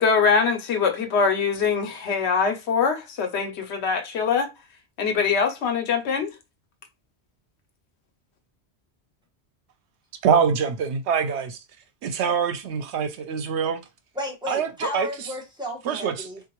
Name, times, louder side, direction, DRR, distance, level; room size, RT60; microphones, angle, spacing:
voice 1, 0.0-4.5 5.0-6.3, left 5 dB, 80° left, 1.0 m, -23 dB
voice 2, 10.2-11.6 12.0-13.8 14.5-15.1 15.8-16.3, right 6 dB, 90° right, 0.9 m, -24 dB
voice 3, 14.1-16.4, left 1 dB, 5° right, 1.2 m, -33 dB
3.7 x 2.5 x 2.9 m
omnidirectional pair, 1.1 m